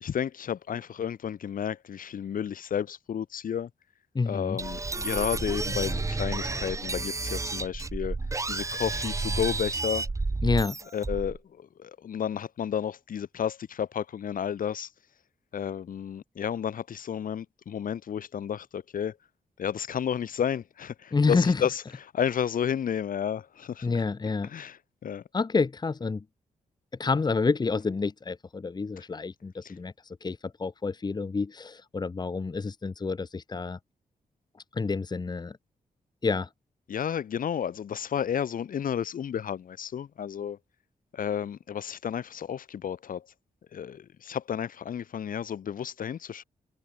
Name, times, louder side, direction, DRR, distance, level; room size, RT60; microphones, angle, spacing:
voice 1, 0.0-3.7 4.2-8.2 8.5-10.1 10.9-14.9 15.5-19.2 19.6-24.0 24.4-25.2 29.6-29.7 36.9-40.6 41.1-43.3 43.7-46.4, left 8 dB, 75° left, 2.7 m, -32 dB
voice 2, 4.1-4.6 10.4-10.7 21.1-21.6 23.8-24.5 25.3-26.2 27.0-29.9 30.2-33.8 34.7-35.6 36.2-36.5, left 4 dB, 30° left, 1.6 m, -28 dB
sound 1, 4.6-11.4, right 3 dB, 20° right, 1.3 m, -31 dB
wide cardioid pair, 130°, 14 cm